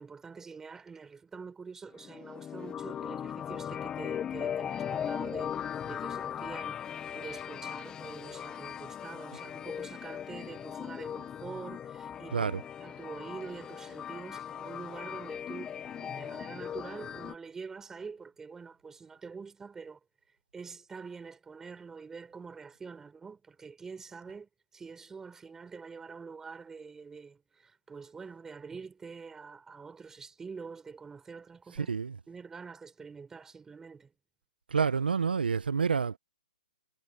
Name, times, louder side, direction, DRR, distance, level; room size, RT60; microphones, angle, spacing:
voice 1, 0.0-12.5 12.8-20.0 20.5-31.9 32.3-34.1, right 5 dB, 10° right, 4.5 m, -46 dB
sound 1, 1.9-17.3, left 9 dB, 15° left, 0.8 m, -38 dB
voice 2, 12.3-12.6 31.7-32.2 34.7-36.2, right 6 dB, 90° right, 1.0 m, -28 dB
hypercardioid pair, 145°, 5 cm